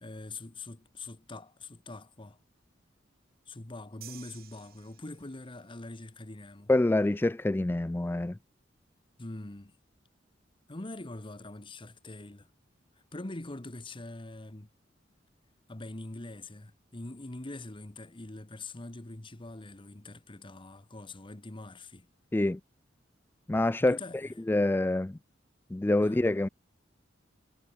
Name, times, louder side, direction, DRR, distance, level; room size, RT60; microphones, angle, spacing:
voice 1, 0.0-2.4 3.5-6.7 9.2-9.7 10.7-12.5 13.1-14.7 15.7-22.1 23.8-24.3 26.0-26.2, left 2 dB, 25° left, 1.2 m, -43 dB
sound 1, 4.0-5.6, right 13 dB, 55° right, 1.9 m, -52 dB
voice 2, 6.7-8.4 22.3-22.6 23.5-24.0 24.5-25.2 25.7-26.5, left 2 dB, 10° left, 0.3 m, -26 dB
head